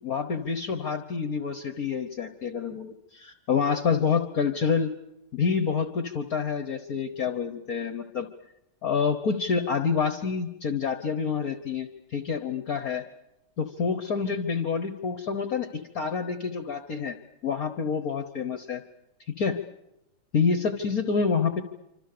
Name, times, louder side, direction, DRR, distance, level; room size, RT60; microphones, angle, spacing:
voice 1, 0.0-4.9 5.3-8.3 8.8-13.0 13.6-17.2 17.4-18.8 19.4-19.6 20.3-21.6, left 6 dB, 55° left, 9 dB, 1.7 m, -27 dB
27.0 x 26.0 x 6.8 m, 0.88 s
omnidirectional pair, 2.0 m